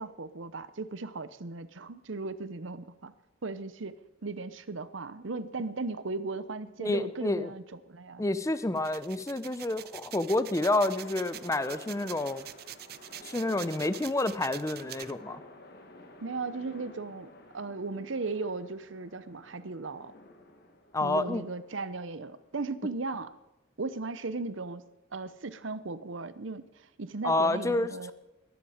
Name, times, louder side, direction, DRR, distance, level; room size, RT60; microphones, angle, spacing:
voice 1, 0.0-3.1 3.4-8.2 16.2-20.1 21.0-23.3 23.8-24.8 25.1-28.1, right 3 dB, 70° right, 14 dB, 0.8 m, -37 dB
voice 2, 6.8-7.5 8.2-12.4 13.2-15.4 20.9-21.4 27.2-28.1, left 2 dB, 15° left, 14 dB, 0.6 m, -29 dB
sound 1, 8.8-15.1, right 12 dB, 50° right, 0.5 m, -45 dB
sound 2, 10.0-23.4, left 2 dB, 50° left, 1.6 m, -52 dB
20.0 x 10.5 x 5.0 m, 0.96 s
head